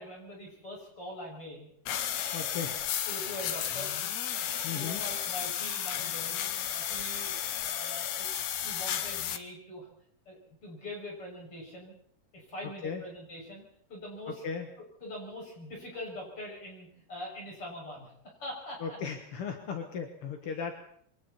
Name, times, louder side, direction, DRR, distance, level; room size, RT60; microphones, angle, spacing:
voice 1, 0.0-1.7 2.2-2.6 3.1-3.9 4.3-6.4 6.7-7.3 7.6-9.9 10.3-11.9 12.3-13.6 13.9-14.4 15.0-19.0 20.4-20.7, left 1 dB, 35° left, -2 dB, 7.5 m, -43 dB
sound 1, 1.8-9.4, left 10 dB, 75° left, 1.6 m, -33 dB
voice 2, 2.3-2.8 4.6-5.0 12.8-13.0 14.3-14.7 18.8-20.7, left 6 dB, 55° left, 4 dB, 1.7 m, -36 dB
27.0 x 23.5 x 4.3 m, 0.64 s
omnidirectional pair, 4.6 m